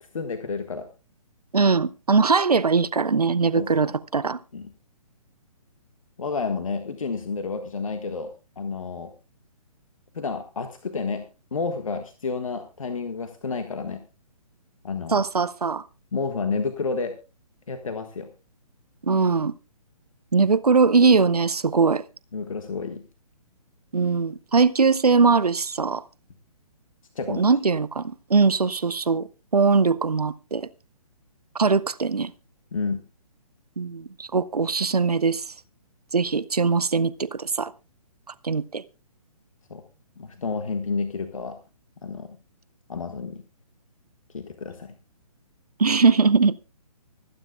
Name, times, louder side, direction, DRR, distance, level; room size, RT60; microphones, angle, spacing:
voice 1, 0.1-0.9 3.5-3.9 4.5-4.6 6.2-9.1 10.1-14.0 14.8-15.2 16.1-17.2 17.7-18.3 22.3-23.0 27.1-27.4 32.7-33.0 39.7-39.8 40.2-41.6 42.0-42.4 42.9-43.4 44.3-44.9, left 4 dB, 60° left, 1.4 m, -30 dB
voice 2, 1.5-4.4 15.1-15.8 19.0-19.5 20.3-22.0 23.9-26.0 27.3-29.3 29.5-30.7 31.5-32.3 33.8-35.5 36.1-37.7 38.4-38.8 45.8-46.6, right 4 dB, 80° right, 0.6 m, -21 dB
25.0 x 9.8 x 2.2 m
figure-of-eight pair, 135°, 19 cm